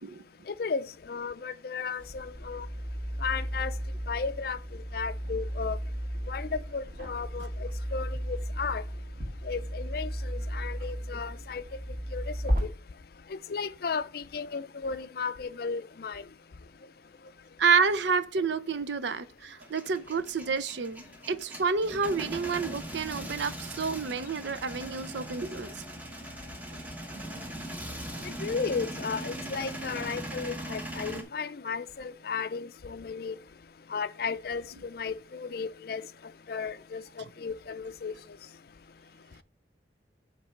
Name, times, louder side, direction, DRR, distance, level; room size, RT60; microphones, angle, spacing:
voice 1, 0.5-2.7 3.2-3.7 4.1-5.8 6.3-8.8 9.4-11.6 12.1-12.2 13.3-16.2 28.4-33.4 33.9-36.0 36.5-37.0 37.4-38.1, left 5 dB, 50° left, 0.4 m, -34 dB
sound 1, 2.0-12.6, equal, 45° right, 1.8 m, -34 dB
voice 2, 17.6-25.8, right 5 dB, 70° right, 0.6 m, -29 dB
Male speech man speaking / Vehicle / Engine starting, 19.6-31.2, right 1 dB, 10° right, 1.0 m, -40 dB
8.0 x 3.3 x 5.7 m
head